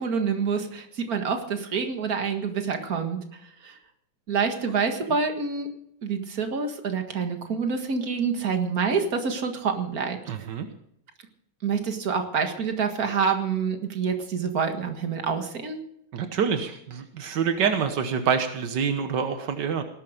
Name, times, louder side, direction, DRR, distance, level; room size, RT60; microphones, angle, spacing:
voice 1, 0.0-3.2 3.6-3.8 4.3-5.7 6.0-10.2 11.6-15.8, right 5 dB, 35° right, 5 dB, 1.6 m, -27 dB
voice 2, 10.3-10.7 16.1-19.8, right 6 dB, 75° right, 7 dB, 1.0 m, -26 dB
18.5 x 12.5 x 5.1 m, 0.73 s
omnidirectional pair, 3.5 m